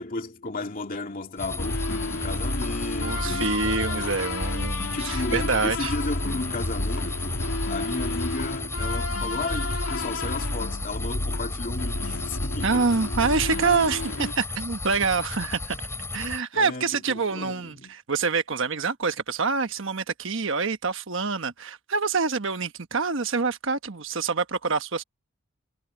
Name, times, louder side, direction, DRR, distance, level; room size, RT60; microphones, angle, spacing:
voice 1, 0.0-4.1 4.8-13.3 16.5-18.0, left 2 dB, 40° left, 2.5 m, -34 dB
sound 1, 1.4-16.4, left 3 dB, 10° left, 7.7 m, -35 dB
sound 2, 1.6-14.3, left 2 dB, 80° left, 2.8 m, -30 dB
voice 2, 3.0-5.9 12.6-15.8 16.1-25.0, right 4 dB, 65° right, 1.3 m, -26 dB
head